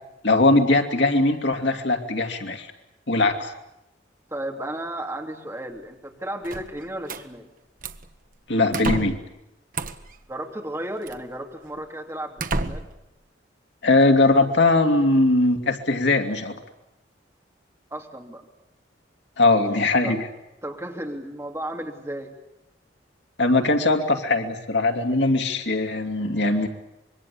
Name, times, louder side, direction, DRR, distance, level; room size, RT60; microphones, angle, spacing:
voice 1, 0.2-2.7 3.1-3.5 8.5-9.2 13.8-16.5 19.4-20.3 23.4-26.7, left 2 dB, 75° left, 5 dB, 2.6 m, -20 dB
voice 2, 4.3-7.5 10.3-12.9 17.9-18.4 20.0-20.2 20.6-22.3, right 1 dB, 15° right, 2 dB, 3.0 m, -34 dB
sound 1, 6.4-7.2 7.8-8.1 8.7-9.3 9.7-10.2 11.1-11.2 11.8-11.9 12.4-13.0, right 2 dB, 50° right, 1.3 m, -30 dB
25.5 x 22.5 x 8.6 m, 0.89 s
head